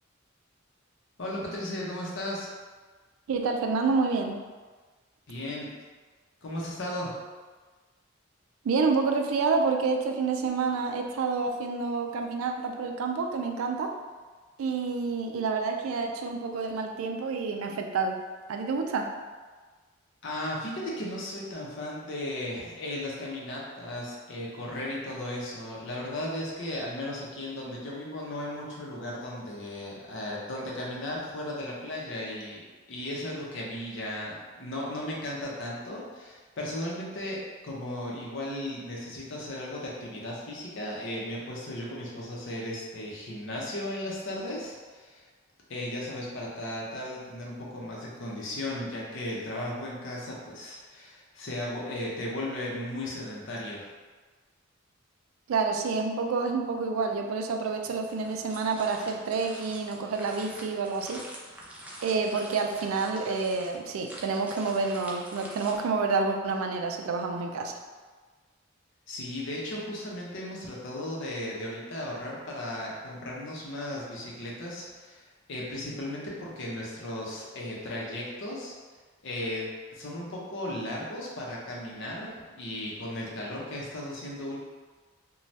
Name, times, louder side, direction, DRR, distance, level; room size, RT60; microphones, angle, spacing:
voice 1, 1.2-2.5 5.3-5.7 6.4-7.2 20.2-32.6 32.9-45.3 45.7-53.9 69.1-78.7 79.2-84.6, left 1 dB, 65° left, -4 dB, 0.7 m, -36 dB
voice 2, 3.3-4.4 8.6-13.9 14.6-18.2 18.5-19.1 55.5-61.2 62.0-67.8, right 4 dB, 85° right, 4 dB, 0.3 m, -28 dB
sound 1, 57.7-65.7, right 1 dB, 5° right, 0.3 m, -46 dB
2.6 x 2.2 x 3.2 m, 1.4 s
head